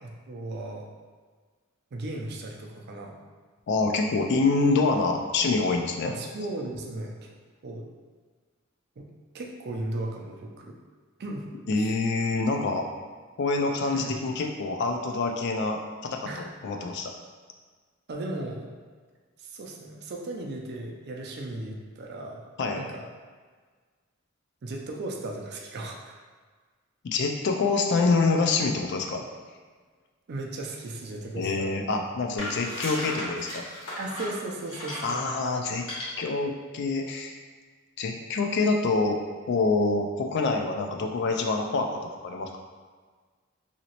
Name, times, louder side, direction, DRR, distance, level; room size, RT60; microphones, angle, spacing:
voice 1, 0.0-0.8 1.9-3.2 6.0-7.3 7.6-7.9 9.0-9.1 9.3-10.8 11.2-11.4 11.8-11.9 13.9-14.1 16.2-16.5 18.1-18.7 19.4-22.4 22.8-23.0 24.6-26.1 30.3-31.7 34.0-35.2, right 2 dB, 50° right, 0 dB, 0.4 m, -36 dB
voice 2, 3.7-6.1 11.7-12.9 13.4-17.1 22.6-22.8 27.1-29.2 31.3-33.6 35.0-35.9 36.2-37.4 38.0-39.2 39.5-42.6, left 3 dB, 55° left, 3 dB, 0.3 m, -26 dB
sound 1, 32.4-35.2 35.8-36.0, left 1 dB, 75° left, 1.1 m, -35 dB
2.9 x 2.8 x 2.9 m, 1.5 s
head